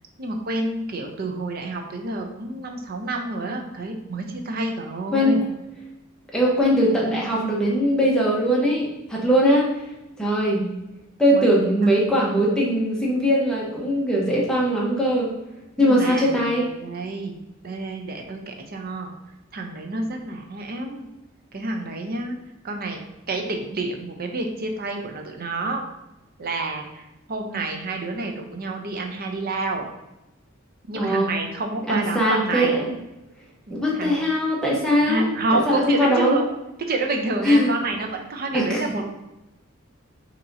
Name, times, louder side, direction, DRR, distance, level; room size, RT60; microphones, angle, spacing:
voice 1, 0.2-5.4 11.3-11.5 11.8-12.1 15.8-17.4 17.6-19.1 19.5-21.1 21.5-22.4 22.6-23.0 23.3-25.8 26.4-27.0 27.3-29.8 30.9-32.8 33.7-34.2 35.1-36.4 36.9-39.0, right 2 dB, 50° right, 3 dB, 0.6 m, -28 dB
voice 2, 5.1-5.4 6.3-9.7 10.2-10.7 11.2-15.3 15.8-16.7 30.9-31.3 31.9-32.9 33.7-36.4 37.4-37.7 38.5-38.8, equal, 5° left, -4 dB, 1.0 m, -21 dB
5.5 x 2.9 x 2.7 m, 0.94 s
head